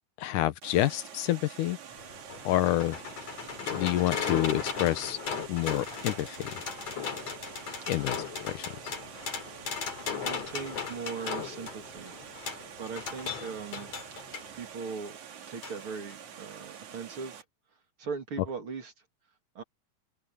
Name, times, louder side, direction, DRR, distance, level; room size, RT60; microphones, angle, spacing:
voice 1, 0.2-1.8 2.4-3.0 3.7-5.2 5.5-6.5 7.9-8.7, left 14 dB, 85° left, 2.5 m, -28 dB
Water, 0.6-17.4, right 8 dB, 70° right, 3.3 m, -47 dB
sound 1, 1.9-14.5 15.6-15.8 16.1-16.2, left 6 dB, 60° left, 4.5 m, -37 dB
voice 2, 10.2-12.2 12.8-13.9 14.5-15.2 15.5-17.4 18.0-18.9 19.5-19.6, right 5 dB, 45° right, 3.1 m, -39 dB
omnidirectional pair, 3.6 m